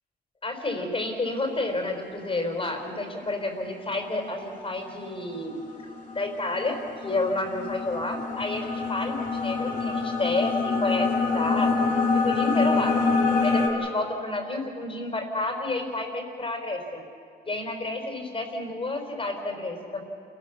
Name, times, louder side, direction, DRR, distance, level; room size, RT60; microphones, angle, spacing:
voice 1, 0.4-5.6 6.1-11.7 12.1-12.9 13.4-17.0 17.4-20.0, left 2 dB, 25° left, 4 dB, 4.8 m, -30 dB
sound 1, 5.0-13.7, left 4 dB, 45° left, 4.1 m, -26 dB
28.5 x 18.5 x 7.2 m, 2.6 s
cardioid pair, 90°, 20 cm